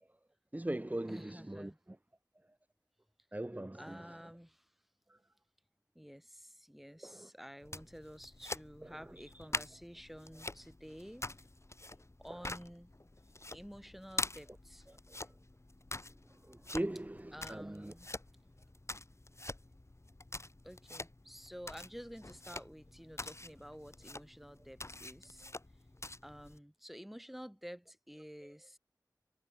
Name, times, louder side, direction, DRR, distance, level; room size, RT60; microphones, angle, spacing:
voice 1, 0.5-1.7 3.3-4.1 5.1-5.2 7.0-7.3 9.2-9.5 14.9-15.3 16.5-17.9, right 1 dB, 20° right, 1.9 m, -40 dB
voice 2, 1.1-1.8 3.7-4.7 5.9-11.3 12.2-12.9 13.5-14.9 17.3-18.1 20.6-25.5 26.2-28.8, equal, ahead, 6.1 m, -51 dB
sound 1, 7.6-26.6, left 2 dB, 40° left, 5.0 m, -46 dB
wide cardioid pair, 60°, 7 cm